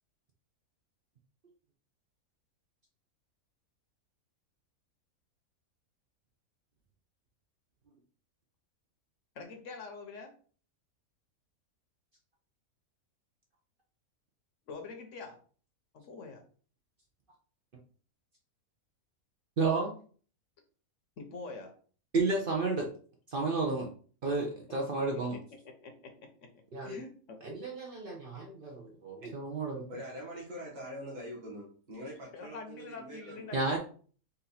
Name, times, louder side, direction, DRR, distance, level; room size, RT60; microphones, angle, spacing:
voice 1, 9.3-10.3 14.7-15.4 15.9-16.4 21.2-21.8 24.9-25.0 25.8-26.5 26.8-27.4 32.3-33.8, left 4 dB, 60° left, 5 dB, 1.0 m, -45 dB
voice 2, 19.6-19.9 22.1-22.9 23.3-23.9 24.2-25.4 26.7-27.0 27.4-29.8 33.5-33.8, right 3 dB, 50° right, 0 dB, 0.6 m, -31 dB
voice 3, 29.9-33.8, equal, 30° right, -4 dB, 1.2 m, -44 dB
4.0 x 2.5 x 4.1 m, 0.42 s
omnidirectional pair, 1.6 m